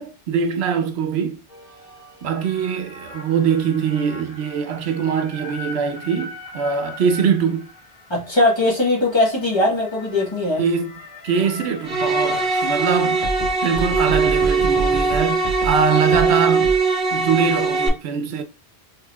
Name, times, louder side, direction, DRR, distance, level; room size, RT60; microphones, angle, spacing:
voice 1, 0.0-1.4 2.2-7.7 10.6-13.2 13.6-16.7 17.1-18.4, right 6 dB, 85° right, 0.9 m, -23 dB
sound 1, 1.5-16.8, right 2 dB, 55° left, 1.7 m, -34 dB
voice 2, 8.1-10.6, left 2 dB, 25° left, 1.2 m, -20 dB
sound 2, 11.8-17.9, right 4 dB, 50° right, 1.0 m, -20 dB
4.4 x 3.3 x 2.3 m
omnidirectional pair, 1.1 m